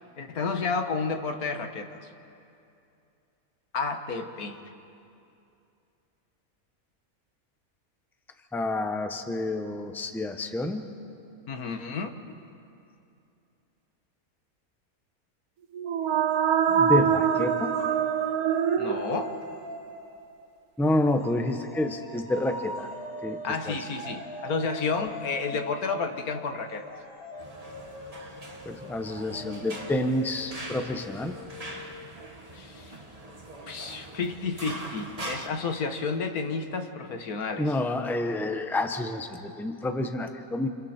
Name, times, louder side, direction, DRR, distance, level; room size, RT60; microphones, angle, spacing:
voice 1, 0.2-2.0 3.7-4.6 11.5-12.1 18.8-19.4 23.4-26.9 32.5-33.0 33.7-37.8, left 4 dB, 80° left, 6 dB, 1.8 m, -31 dB
voice 2, 8.5-10.9 16.7-17.8 20.8-22.9 23.2-23.4 23.7-23.8 28.6-31.4 37.6-40.7, left 2 dB, ahead, 6 dB, 0.9 m, -28 dB
sound 1, 15.7-19.6, right 8 dB, 85° right, 1.3 m, -24 dB
sound 2, 16.3-20.6 21.2-32.5, left 1 dB, 45° left, 5.4 m, -43 dB
sound 3, 27.4-35.5, right 1 dB, 25° right, 1.6 m, -42 dB
30.0 x 28.5 x 4.4 m, 2.7 s
omnidirectional pair, 1.5 m